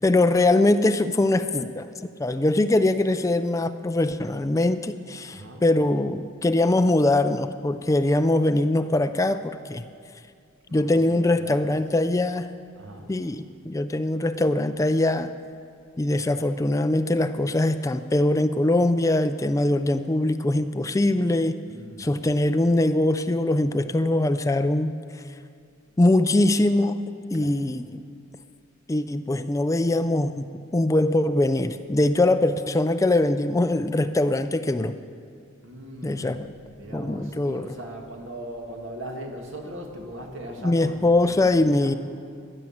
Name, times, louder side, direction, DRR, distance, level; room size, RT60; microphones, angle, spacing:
voice 1, 0.0-1.9 2.2-9.9 10.7-12.5 13.1-15.3 16.0-21.6 22.0-25.0 26.0-27.0 27.3-28.0 28.9-35.0 36.0-36.5 36.9-37.7 40.6-41.9, left 2 dB, 15° left, 10 dB, 0.4 m, -22 dB
voice 2, 5.3-5.7 10.7-11.8 12.7-13.2 21.6-22.2 27.3-27.6 35.6-36.4 36.8-42.0, right 1 dB, 70° right, 2 dB, 2.0 m, -39 dB
15.5 x 11.0 x 7.2 m, 2.3 s
head